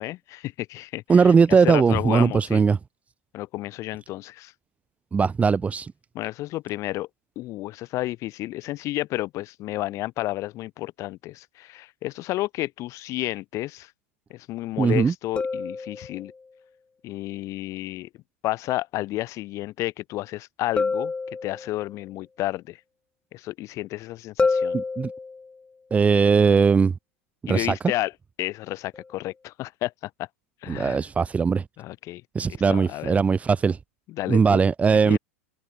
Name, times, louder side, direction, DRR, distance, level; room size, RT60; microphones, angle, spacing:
voice 1, 0.0-2.6 3.3-4.5 6.1-7.1 7.3-13.9 14.3-16.3 17.0-18.1 18.4-21.1 21.4-22.8 23.3-24.8 27.5-28.1 28.4-30.3 30.6-31.0 31.8-32.2 32.5-33.1 34.1-34.6 35.0-35.2, left 17 dB, 45° left, 3.2 m, -31 dB
voice 2, 1.1-2.8 5.1-5.9 14.8-15.1 24.7-25.1 25.9-26.9 27.5-27.7 30.7-31.6 32.3-33.8 34.3-35.2, right 5 dB, 20° right, 1.5 m, -19 dB
sound 1, 15.4-16.5 20.8-22.0 24.4-25.6 28.9-29.1, left 4 dB, 15° left, 1.6 m, -28 dB
open air
hypercardioid pair, 95°, 8 cm